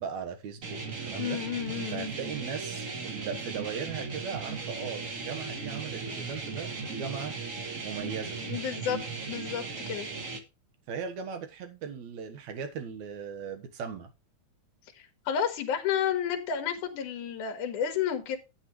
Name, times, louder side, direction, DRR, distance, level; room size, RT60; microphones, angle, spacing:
voice 1, 0.0-1.4 1.9-7.4 7.8-8.4 10.9-14.1, right 6 dB, 70° right, 2.6 m, -38 dB
sound 1, 0.6-10.4, right 4 dB, 90° right, 0.7 m, -37 dB
voice 2, 1.2-2.1 8.0-8.1 8.4-9.0 9.3-10.1 15.3-18.4, left 8 dB, 80° left, 2.9 m, -31 dB
11.5 x 8.4 x 3.1 m
omnidirectional pair, 3.6 m